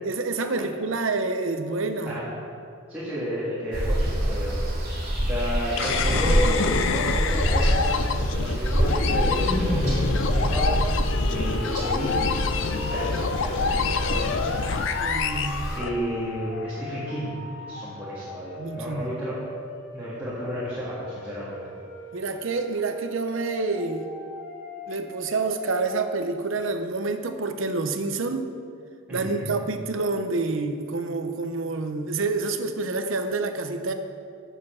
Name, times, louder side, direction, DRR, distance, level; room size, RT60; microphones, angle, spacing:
voice 1, 0.0-2.2 15.0-15.7 18.6-19.2 22.1-24.1 24.9-28.5 29.1-33.9, right 3 dB, 60° right, 7 dB, 0.7 m, -28 dB
voice 2, 2.9-4.7 5.2-10.8 11.3-13.2 13.4-14.7 15.7-19.4 19.9-21.6 29.1-29.5, equal, 10° right, -10 dB, 1.8 m, -32 dB
sound 1, 3.7-15.8, right 1 dB, 40° right, 2.4 m, -26 dB
sound 2, 5.8-16.4, left 5 dB, 60° left, 0.4 m, -27 dB
sound 3, 11.7-26.1, left 2 dB, 80° left, 2.2 m, -41 dB
8.5 x 6.8 x 6.2 m, 2.4 s
head